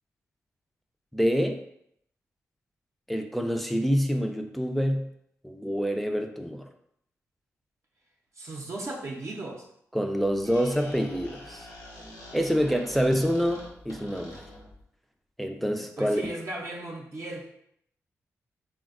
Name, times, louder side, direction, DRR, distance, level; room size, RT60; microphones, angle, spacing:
voice 1, 1.1-1.6 3.1-5.1 5.4-6.7 9.9-11.7 12.3-14.4 15.4-16.2, equal, ahead, 5 dB, 0.4 m, -26 dB
voice 2, 8.4-9.7 12.6-13.4 16.0-17.5, right 2 dB, 50° right, -2 dB, 0.6 m, -37 dB
Squeak, 10.2-14.8, left 1 dB, 80° left, 0.8 m, -45 dB
3.3 x 2.2 x 2.4 m, 0.72 s
supercardioid pair, 40°, 6 cm